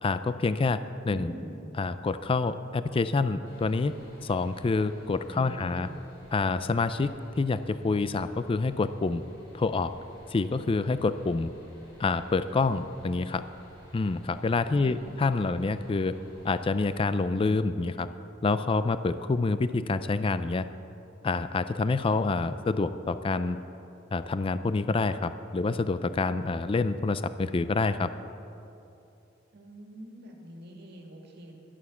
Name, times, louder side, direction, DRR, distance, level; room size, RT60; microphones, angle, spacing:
voice 1, 0.0-1.3 1.8-3.9 4.2-5.9 6.3-9.2 9.5-9.9 10.3-11.5 12.0-13.4 13.9-16.2 16.4-18.1 18.4-20.7 21.2-23.6 24.1-28.1, left 3 dB, 25° left, 12 dB, 0.4 m, -27 dB
voice 2, 1.1-1.7 5.3-6.0 14.7-15.8 29.5-31.5, right 1 dB, 55° right, 1 dB, 2.1 m, -44 dB
sound 1, 3.4-17.0, equal, 60° left, 3.6 m, -54 dB
11.5 x 11.0 x 7.1 m, 2.7 s
head